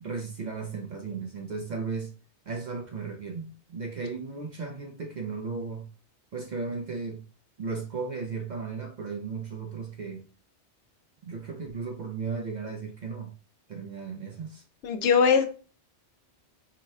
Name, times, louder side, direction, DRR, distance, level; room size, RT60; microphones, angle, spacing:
voice 1, 0.0-2.1 2.5-5.9 6.3-7.2 7.6-10.3 11.2-13.3 13.7-14.6, right 4 dB, 55° right, 0.5 m, -35 dB
voice 2, 14.8-15.5, left 6 dB, 80° left, 0.9 m, -21 dB
4.7 x 2.1 x 3.5 m
omnidirectional pair, 1.2 m